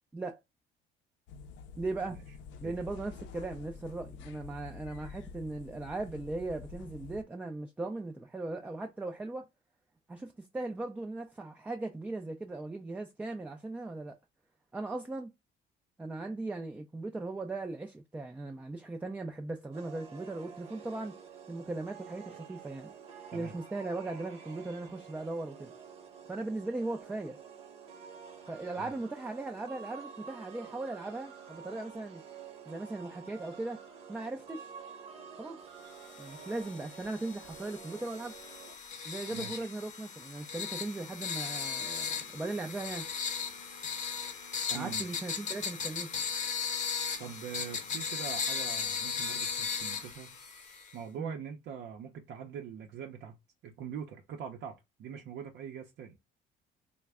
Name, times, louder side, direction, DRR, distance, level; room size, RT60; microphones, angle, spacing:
sound 1, 1.3-7.2, left 5 dB, 80° left, 0.5 m, -48 dB
voice 1, 1.8-2.2 2.6-9.5 10.1-14.1 14.7-15.3 16.0-21.1 21.5-22.9 23.3-25.7 26.3-27.4 28.5-32.2 32.7-33.8 34.1-34.7 35.4-35.6 36.2-38.4 39.1-43.1 44.7-46.1 51.2-51.3, right 2 dB, 10° right, 0.3 m, -38 dB
sound 2, 19.7-38.8, right 6 dB, 30° right, 0.9 m, -49 dB
sound 3, 36.1-51.0, left 6 dB, 40° left, 0.8 m, -37 dB
voice 2, 39.3-39.7 44.7-45.2 47.2-50.4 50.9-53.4 53.6-54.7 55.0-56.2, right 7 dB, 65° right, 0.6 m, -43 dB
3.2 x 2.1 x 3.4 m
cardioid pair, 150°, 19 cm